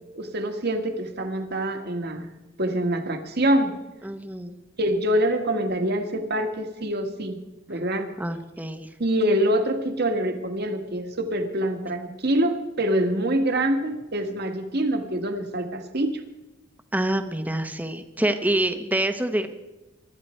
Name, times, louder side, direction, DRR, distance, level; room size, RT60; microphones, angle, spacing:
voice 1, 0.1-2.3 2.6-3.7 4.8-7.4 7.7-8.1 9.0-16.2, right 1 dB, 55° right, 6 dB, 1.7 m, -25 dB
voice 2, 4.0-4.5 8.2-8.9 16.9-19.5, right 1 dB, 10° right, 8 dB, 1.0 m, -26 dB
23.5 x 12.0 x 4.4 m, 1.0 s
head